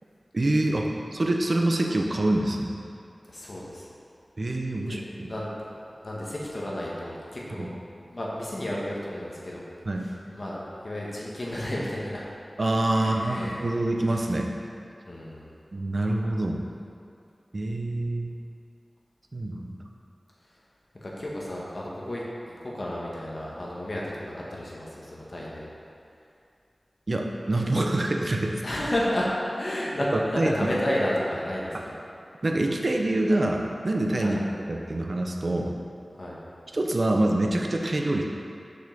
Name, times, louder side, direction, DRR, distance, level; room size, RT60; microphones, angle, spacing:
voice 1, 0.3-2.7 4.4-5.3 7.6-7.7 9.9-10.1 12.6-14.5 15.7-16.6 17.5-18.3 19.3-19.8 27.1-28.6 30.4-30.5 32.4-34.4 34.7-35.7 36.7-38.2, right 1 dB, 55° right, 1 dB, 0.9 m, -26 dB
voice 2, 3.3-3.9 4.7-7.7 8.1-9.6 10.0-12.3 12.9-13.7 15.0-15.5 21.0-25.7 28.6-29.3 29.6-31.9 34.2-34.4 36.1-36.4, left 1 dB, 50° left, -5 dB, 1.7 m, -32 dB
6.6 x 5.5 x 6.8 m, 2.5 s
wide cardioid pair, 65°, 0 cm